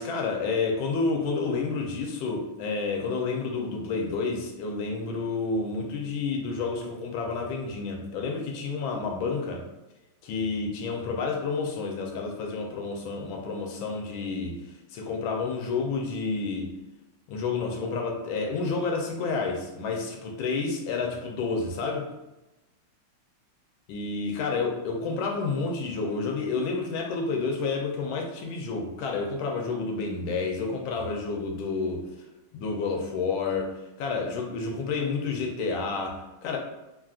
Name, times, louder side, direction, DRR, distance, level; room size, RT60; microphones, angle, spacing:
voice 1, 0.0-9.7 10.2-16.7 17.3-22.1 23.9-32.0 32.5-36.6, left 4 dB, 75° left, 1 dB, 1.3 m, -30 dB
3.3 x 2.4 x 2.3 m, 1.0 s
omnidirectional pair, 2.4 m